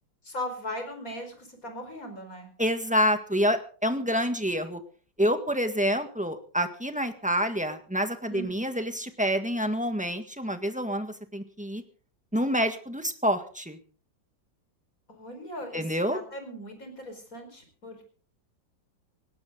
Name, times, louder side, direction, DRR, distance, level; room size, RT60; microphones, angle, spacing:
voice 1, 0.2-2.5 8.3-8.6 15.1-18.1, left 1 dB, 45° left, 5 dB, 5.4 m, -39 dB
voice 2, 2.6-4.8 5.2-11.8 12.3-13.8 15.7-16.2, equal, 5° right, 7 dB, 1.6 m, -27 dB
18.5 x 17.5 x 4.0 m, 0.41 s
omnidirectional pair, 2.1 m